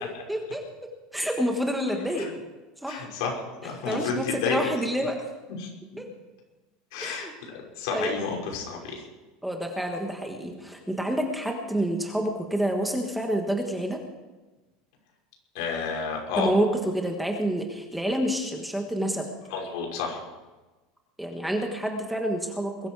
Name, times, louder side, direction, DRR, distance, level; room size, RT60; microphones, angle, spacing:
voice 1, 0.3-0.6 1.1-2.3 2.8-3.1 3.8-5.3 5.9-6.1 7.0-7.3 7.9-8.2 9.4-14.0 16.4-19.3 21.2-22.9, equal, ahead, 2 dB, 1.4 m, -28 dB
voice 2, 2.9-4.7 5.6-5.7 6.9-7.3 7.8-9.0 15.5-16.5 19.5-20.2, left 5 dB, 75° left, 0 dB, 5.6 m, -30 dB
21.5 x 13.5 x 4.8 m, 1.2 s
cardioid pair, 175°, 2 cm